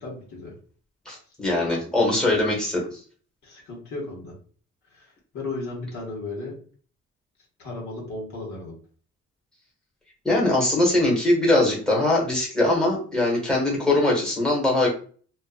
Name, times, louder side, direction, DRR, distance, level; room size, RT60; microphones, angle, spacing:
voice 1, 0.0-0.5 3.4-4.3 4.9-6.5 7.6-8.8, left 2 dB, 70° left, -2 dB, 1.2 m, -35 dB
voice 2, 1.1-3.0 10.2-14.9, left 2 dB, ahead, -3 dB, 1.0 m, -22 dB
2.5 x 2.4 x 2.4 m, 0.43 s
cardioid pair, 90°, 30 cm